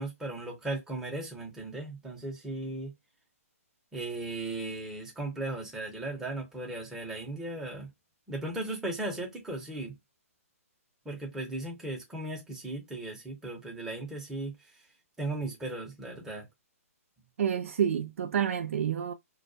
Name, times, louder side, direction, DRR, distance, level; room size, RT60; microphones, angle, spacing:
voice 1, 0.0-2.9 3.9-7.9 8.3-10.0 11.0-14.6 15.2-16.5, right 2 dB, 5° right, 0.8 m, -36 dB
voice 2, 17.4-19.1, right 8 dB, 60° right, 0.4 m, -28 dB
2.3 x 2.1 x 2.6 m
hypercardioid pair, 155°, 8 cm